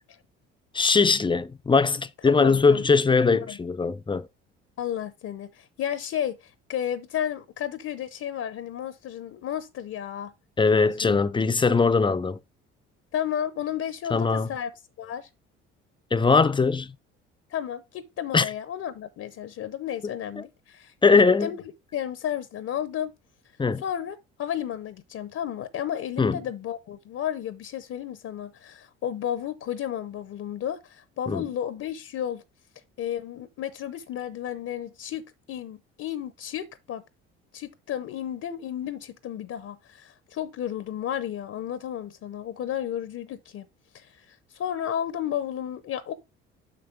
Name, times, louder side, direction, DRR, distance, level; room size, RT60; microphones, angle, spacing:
voice 1, 0.7-4.3 10.6-12.4 14.1-14.5 16.1-16.9 18.3-18.5 21.0-21.5 23.6-23.8 26.2-26.4 31.3-31.5, left 4 dB, 15° left, 0.5 m, -21 dB
voice 2, 2.2-2.8 3.2-3.6 4.8-10.3 10.6-11.2 13.1-14.7 15.0-15.3 17.5-20.9 21.4-21.6 21.9-23.1 23.8-32.4 33.0-35.2 35.5-37.0 37.5-43.6 43.9-46.1, left 10 dB, 50° left, 0.7 m, -33 dB
6.3 x 6.0 x 3.5 m
hypercardioid pair, 60°, 31 cm